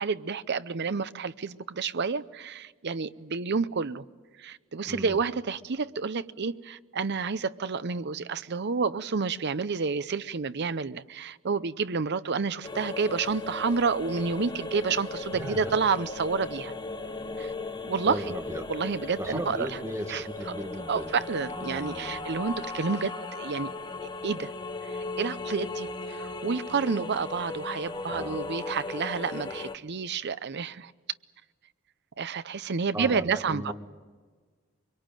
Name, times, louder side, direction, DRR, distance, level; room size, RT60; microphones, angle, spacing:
voice 1, 0.0-4.0 4.4-16.7 17.4-17.5 17.8-18.2 18.7-19.7 20.1-20.5 20.9-23.7 24.2-24.5 24.8-30.9 32.2-33.7, right 5 dB, 55° right, 0.7 m, -30 dB
voice 2, 4.8-5.2 15.3-15.7 18.0-18.7 19.2-21.1 21.5-22.2 28.1-28.4 32.9-33.7, right 1 dB, 15° right, 1.8 m, -37 dB
sound 1, 12.6-29.7, left 3 dB, 20° left, 0.9 m, -37 dB
sound 2, 13.2-24.2, right 3 dB, 70° right, 1.5 m, -51 dB
24.0 x 23.5 x 9.1 m
head